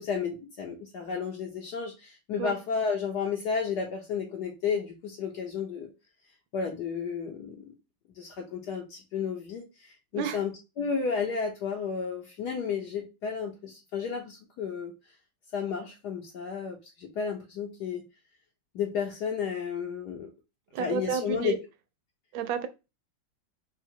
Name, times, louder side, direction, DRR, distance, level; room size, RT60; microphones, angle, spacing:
voice 1, 0.0-5.9 6.5-7.7 8.1-10.5 10.8-14.9 15.5-18.0 18.7-20.3 20.8-21.5, left 6 dB, 65° left, 1.2 m, -32 dB
voice 2, 20.7-21.6 22.3-22.7, right 8 dB, 85° right, 1.3 m, -31 dB
3.7 x 2.2 x 4.3 m
omnidirectional pair, 2.1 m